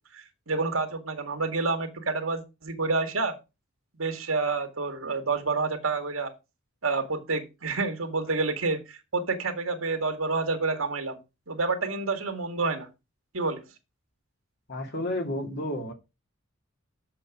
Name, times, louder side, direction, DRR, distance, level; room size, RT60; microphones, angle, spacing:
voice 1, 0.1-3.4 4.0-6.3 6.8-11.2 11.5-12.9 13.3-13.6, right 3 dB, 80° right, 1.9 m, -28 dB
voice 2, 14.7-15.9, left 1 dB, 55° left, 2.5 m, -31 dB
7.6 x 6.4 x 4.8 m
head